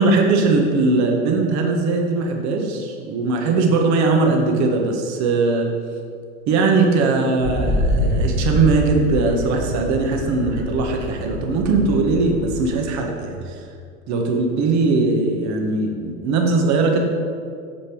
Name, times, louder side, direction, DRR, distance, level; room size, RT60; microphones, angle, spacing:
voice 1, 0.0-5.7 6.5-13.6 14.1-17.0, right 3 dB, 45° right, 2 dB, 1.6 m, -20 dB
Wind, 7.4-12.9, left 1 dB, 5° left, 1.2 m, -25 dB
8.6 x 6.9 x 4.9 m, 2.2 s
hypercardioid pair, 110°, 38 cm